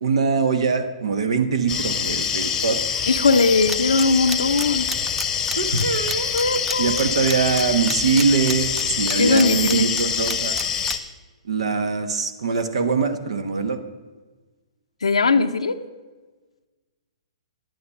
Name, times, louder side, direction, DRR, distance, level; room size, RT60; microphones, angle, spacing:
voice 1, 0.0-2.8 5.6-6.3 6.8-10.6 11.4-13.8, right 5 dB, 70° right, 9 dB, 1.2 m, -22 dB
sound 1, 1.7-11.0, left 7 dB, 15° left, 0.9 m, -25 dB
voice 2, 3.1-4.9 6.3-7.1 9.2-9.9 15.0-15.8, left 4 dB, 90° left, 5 dB, 0.6 m, -20 dB
sound 2, 3.7-10.9, right 3 dB, 10° right, 0.5 m, -31 dB
10.5 x 9.4 x 5.7 m, 1.3 s
hypercardioid pair, 135°, 3 cm